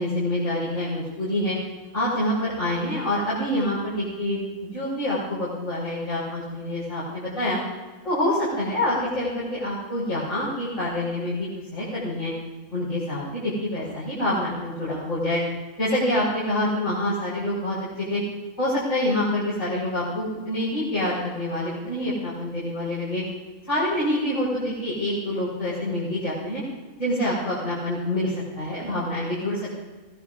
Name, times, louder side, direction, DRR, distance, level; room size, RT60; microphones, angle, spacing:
voice 1, 0.0-1.6 1.9-7.6 8.0-12.3 12.7-15.4 15.8-18.2 18.6-23.2 23.7-26.6 27.0-29.8, left 1 dB, 80° left, -9 dB, 5.5 m, -26 dB
23.5 x 17.5 x 2.5 m, 1.3 s
omnidirectional pair, 1.3 m